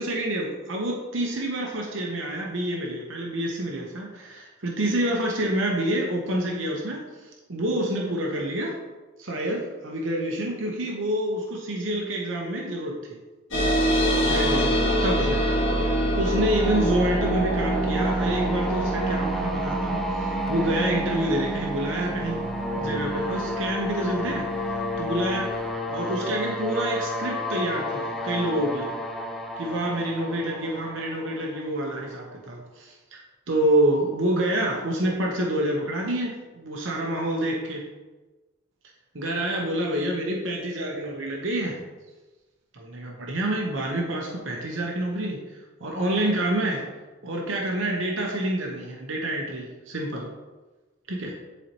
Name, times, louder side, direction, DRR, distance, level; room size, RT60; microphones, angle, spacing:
voice 1, 0.0-7.0 7.5-8.8 9.2-13.0 14.2-15.6 16.1-22.4 22.8-24.5 25.0-25.5 25.9-28.9 29.6-33.2 33.5-37.8 39.1-41.8 42.7-45.4 45.8-46.9 47.2-50.3 51.1-51.4, right 1 dB, 75° right, -1 dB, 1.0 m, -27 dB
sound 1, 13.5-24.4, equal, 75° left, 2.1 m, -26 dB
sound 2, 16.2-32.0, equal, ahead, 0.4 m, -31 dB
sound 3, 16.9-25.7, right 2 dB, 35° left, 0.8 m, -35 dB
10.5 x 4.2 x 3.0 m, 1.2 s
head